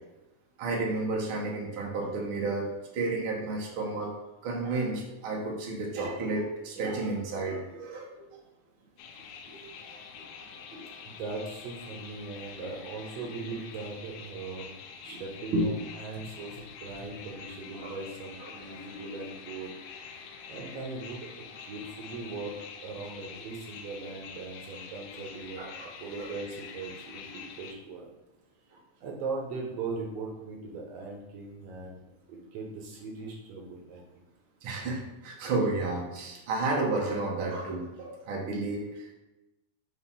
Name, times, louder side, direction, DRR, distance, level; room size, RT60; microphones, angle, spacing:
voice 1, 0.6-4.1 4.4-8.3 9.5-9.6 10.2-10.3 10.7-10.9 13.2-13.3 15.1-15.2 15.5-15.7 17.7-17.9 18.4-18.8 25.6-25.9 26.2-26.3 34.6-39.1, right 2 dB, 90° right, -2 dB, 1.1 m, -32 dB
sound 1, 9.0-27.7, left 6 dB, 80° left, 1.9 m, -46 dB
voice 2, 11.0-14.7 15.0-19.7 20.1-21.3 21.6-22.5 22.8-25.6 26.0-28.1 29.0-34.2, right 3 dB, 70° right, -1 dB, 1.6 m, -39 dB
6.4 x 3.0 x 5.5 m, 0.99 s
omnidirectional pair, 4.0 m